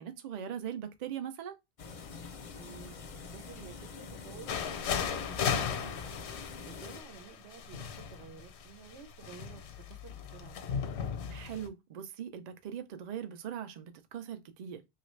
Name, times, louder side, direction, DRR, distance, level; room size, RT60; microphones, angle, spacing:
voice 1, 0.0-1.6 11.3-14.8, right 9 dB, 55° right, 0.5 m, -40 dB
sound 1, 1.8-7.0, left 4 dB, 60° left, 0.3 m, -45 dB
voice 2, 2.5-2.9 3.3-6.3 6.6-9.6 9.9-10.5, right 6 dB, 90° right, 1.1 m, -52 dB
sound 2, 4.5-11.7, left 7 dB, 85° left, 0.9 m, -36 dB
3.1 x 2.4 x 3.0 m
omnidirectional pair, 1.1 m